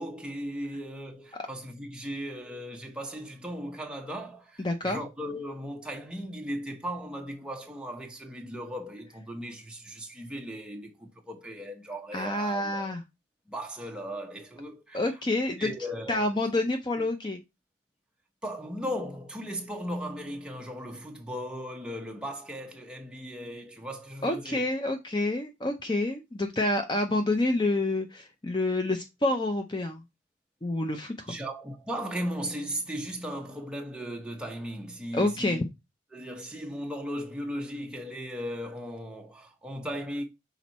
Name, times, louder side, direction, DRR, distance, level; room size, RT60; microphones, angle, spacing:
voice 1, 0.0-13.0 13.5-15.0 15.6-16.3 16.9-17.0 18.4-24.6 31.3-35.7 36.1-40.2, equal, 5° right, 1.0 m, -37 dB
voice 2, 4.6-5.0 12.1-13.0 14.9-15.7 16.1-17.4 24.2-30.0 30.6-31.3 35.1-35.6, left 2 dB, 25° left, 0.6 m, -28 dB
6.1 x 4.1 x 4.1 m
head